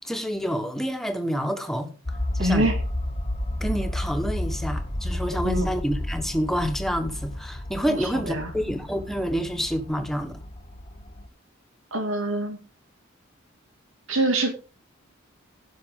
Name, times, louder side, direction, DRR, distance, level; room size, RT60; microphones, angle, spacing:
voice 1, 0.0-1.9 2.3-2.7 3.6-10.4, equal, ahead, 1.3 m, -28 dB
sound 1, 2.1-11.3, left 1 dB, 30° left, 1.1 m, -31 dB
voice 2, 2.4-2.8 5.4-5.7 7.8-8.5 11.9-12.6 14.1-14.5, right 1 dB, 80° right, 2.3 m, -25 dB
16.0 x 6.0 x 3.7 m
head